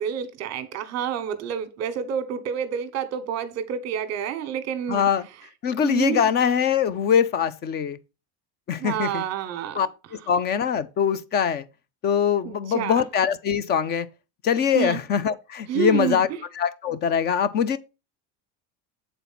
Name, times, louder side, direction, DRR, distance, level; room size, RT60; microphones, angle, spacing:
voice 1, 0.0-5.1 5.8-6.2 8.8-9.8 12.4-13.0 14.7-15.0 15.7-16.2, right 9 dB, 40° right, 1.2 m, -28 dB
voice 2, 4.9-5.2 5.6-8.0 8.7-9.2 9.8-9.9 10.3-11.6 12.0-14.1 14.4-16.3 16.6-17.8, left 8 dB, 25° left, 0.4 m, -23 dB
8.3 x 4.1 x 5.7 m
cardioid pair, 170°, 40 cm